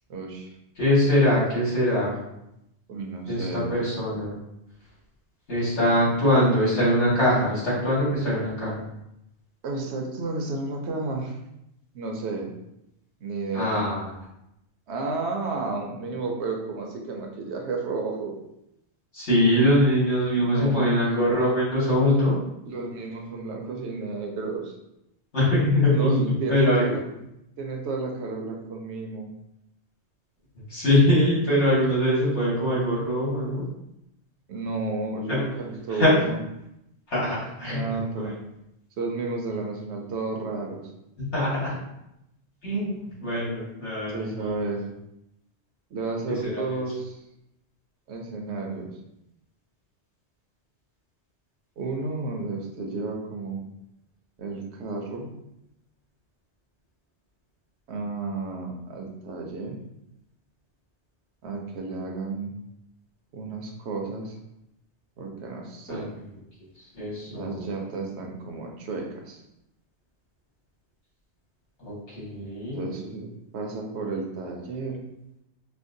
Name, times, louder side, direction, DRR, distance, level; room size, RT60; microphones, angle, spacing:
voice 1, 0.1-0.5 2.9-3.7 9.6-11.4 11.9-12.5 13.2-13.8 14.9-18.4 20.4-21.3 22.0-22.1 22.7-24.7 25.9-27.0 27.6-29.3 34.5-36.4 37.7-38.4 39.0-40.8 44.1-44.9 45.9-47.2 48.1-48.9 51.8-53.6 54.4-55.3 57.9-59.8 61.4-62.5 63.3-64.4 65.2-66.1 67.3-69.4 72.7-75.0, right 3 dB, 75° right, 2 dB, 0.9 m, -32 dB
voice 2, 0.8-2.2 3.3-4.3 5.5-8.8 13.5-14.1 19.1-22.4 25.3-27.0 30.7-33.6 35.9-36.1 37.1-38.3 41.3-41.8 42.6-44.7 46.3-46.8 65.9-66.1 66.9-67.7 71.8-72.8, left 1 dB, 90° left, -9 dB, 2.0 m, -23 dB
4.3 x 2.0 x 2.6 m, 0.84 s
omnidirectional pair, 1.2 m